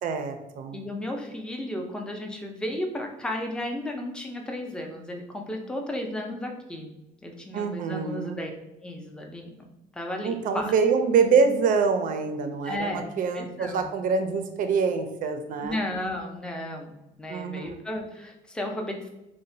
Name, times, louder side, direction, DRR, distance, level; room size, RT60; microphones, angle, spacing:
voice 1, 0.0-0.8 7.5-8.3 10.2-15.8 17.3-17.8, right 5 dB, 55° right, 7 dB, 0.4 m, -25 dB
voice 2, 0.7-6.9 7.2-8.5 8.8-9.5 9.9-10.7 12.6-13.0 13.3-13.9 15.6-19.1, left 1 dB, 5° left, 2 dB, 0.4 m, -34 dB
2.9 x 2.1 x 2.6 m, 0.96 s
cardioid pair, 110°, 17 cm